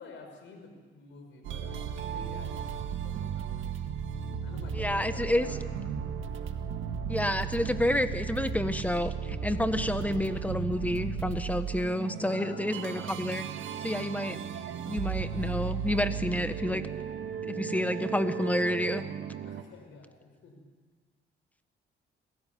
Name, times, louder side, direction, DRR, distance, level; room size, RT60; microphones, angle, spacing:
voice 1, 0.0-3.7 4.4-6.1 12.2-12.8 19.4-20.6, left 4 dB, 75° left, 4 dB, 6.1 m, -50 dB
sound 1, 1.4-19.6, right 7 dB, 80° right, 1.7 m, -35 dB
voice 2, 4.7-5.5 7.1-13.4 13.8-14.4 14.8-16.8 17.4-19.0, left 1 dB, 5° left, 10 dB, 1.3 m, -29 dB
25.5 x 15.5 x 9.5 m, 1.5 s
cardioid pair, 90°, 20 cm